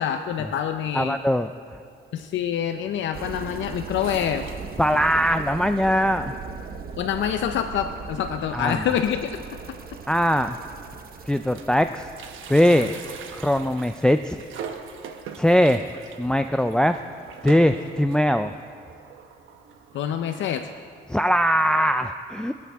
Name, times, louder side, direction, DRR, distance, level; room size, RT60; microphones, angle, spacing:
voice 1, 0.0-1.2 2.1-4.5 7.0-9.4 9.7-9.8 19.9-20.7, left 9 dB, 70° left, 7 dB, 0.6 m, -26 dB
voice 2, 0.9-1.5 4.8-6.3 8.5-8.8 10.1-10.6 11.3-12.1 12.5-12.9 13.3-14.4 15.4-15.9 16.2-17.0 17.4-18.5 21.1-22.5, equal, 5° left, 8 dB, 0.4 m, -21 dB
sound 1, 3.1-17.1 17.5-17.6, right 5 dB, 50° right, 1.1 m, -40 dB
sound 2, 4.0-5.2 5.7-5.8 6.0-6.1 7.0-7.1 7.5-7.7 8.0-8.1 9.4-9.5 10.2-10.3 10.6-11.8 12.1-20.5, right 6 dB, 80° right, 1.1 m, -42 dB
25.5 x 8.6 x 3.5 m, 2.5 s
cardioid pair, 90°, 20 cm